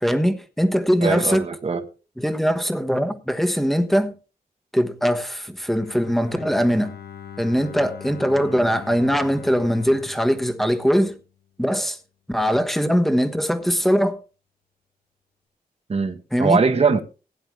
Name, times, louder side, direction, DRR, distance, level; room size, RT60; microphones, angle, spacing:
voice 1, 0.0-1.5 2.2-4.1 4.7-6.9 7.4-11.2 11.6-12.0 12.3-14.2 16.3-16.6, equal, ahead, 1.2 m, -21 dB
voice 2, 1.0-1.8 15.9-17.0, right 5 dB, 40° right, 1.2 m, -21 dB
Bowed string instrument, 5.8-11.7, left 8 dB, 80° left, 1.7 m, -42 dB
16.5 x 10.0 x 3.2 m
wide cardioid pair, 150°, 16 cm